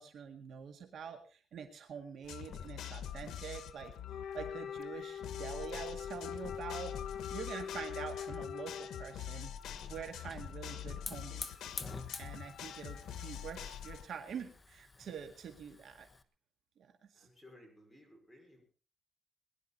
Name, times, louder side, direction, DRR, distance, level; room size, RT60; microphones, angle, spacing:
voice 1, 0.0-3.9 4.3-6.9 7.3-9.5 9.9-11.8 12.2-16.1 16.8-17.3, right 7 dB, 65° right, 5 dB, 1.9 m, -46 dB
sound 1, 2.2-14.1, left 9 dB, 90° left, 1.2 m, -45 dB
Wind instrument woodwind instrument, 4.1-9.2, left 8 dB, 70° left, 1.6 m, -43 dB
Hiss / Fire, 9.4-16.2, left 3 dB, 20° left, 1.0 m, -49 dB
voice 2, 17.1-18.6, left 1 dB, 5° left, 0 dB, 5.3 m, -59 dB
21.0 x 11.0 x 4.2 m, 0.37 s
cardioid pair, 145°, 0 cm